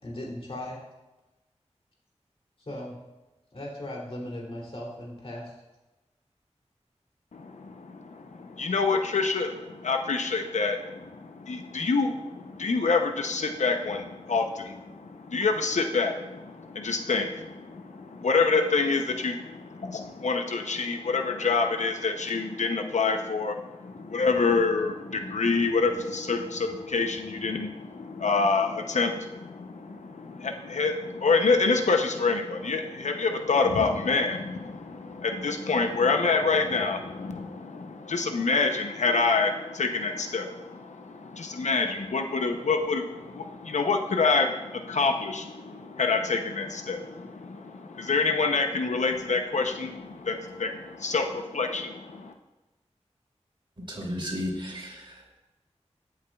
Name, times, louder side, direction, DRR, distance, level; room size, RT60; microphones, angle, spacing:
voice 1, 0.0-0.8 2.7-3.0 3.5-5.5, left 1 dB, 55° left, -3 dB, 2.9 m, -37 dB
voice 2, 7.3-52.3, left 4 dB, 85° left, 5 dB, 0.7 m, -27 dB
voice 3, 53.9-55.4, left 1 dB, 45° right, -2 dB, 2.8 m, -34 dB
15.0 x 8.2 x 2.3 m, 1.0 s
wide cardioid pair, 80°, 12 cm